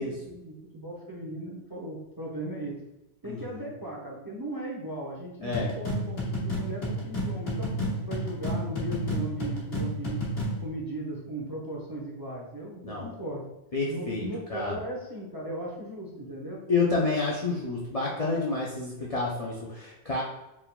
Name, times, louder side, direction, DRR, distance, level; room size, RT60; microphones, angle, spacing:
voice 1, 0.0-2.7 3.2-7.7 8.0-10.2 10.6-13.4 13.9-16.6, right 1 dB, 25° right, -3 dB, 0.6 m, -37 dB
voice 2, 3.2-3.7 5.4-5.7 12.8-13.1 13.7-14.2 14.5-14.7 16.7-20.2, left 3 dB, 40° left, -5 dB, 0.6 m, -29 dB
sound 1, 5.5-10.6, equal, 60° left, 1.3 m, -31 dB
4.6 x 3.5 x 2.2 m, 0.95 s
omnidirectional pair, 1.1 m